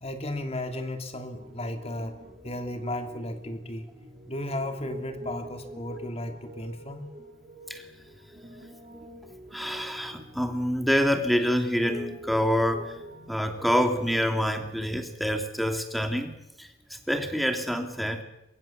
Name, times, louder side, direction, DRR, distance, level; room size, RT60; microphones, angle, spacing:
voice 1, 0.0-2.2 2.4-3.9 4.3-7.1, left 1 dB, 35° left, 7 dB, 2.9 m, -34 dB
Piano, 1.3-15.0, equal, 30° right, 3.7 m, -45 dB
voice 2, 9.5-13.0 13.3-18.2, equal, ahead, 6 dB, 2.8 m, -27 dB
24.0 x 22.5 x 7.2 m, 0.87 s
head